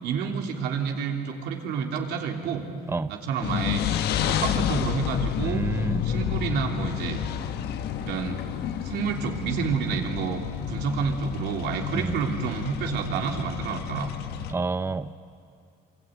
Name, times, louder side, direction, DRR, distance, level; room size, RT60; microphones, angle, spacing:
voice 1, 0.0-2.7 3.1-3.8 4.2-5.6 6.0-7.2 8.0-8.4 8.8-10.4 10.7-14.1, right 6 dB, 85° right, 2 dB, 3.3 m, -29 dB
sound 1, 3.4-14.5, left 9 dB, 75° left, 1.2 m, -30 dB
voice 2, 5.4-6.0 11.9-12.1 14.5-15.1, right 3 dB, 15° right, 13 dB, 0.6 m, -29 dB
27.0 x 23.5 x 9.3 m, 2.3 s
cardioid pair, 110°, 17 cm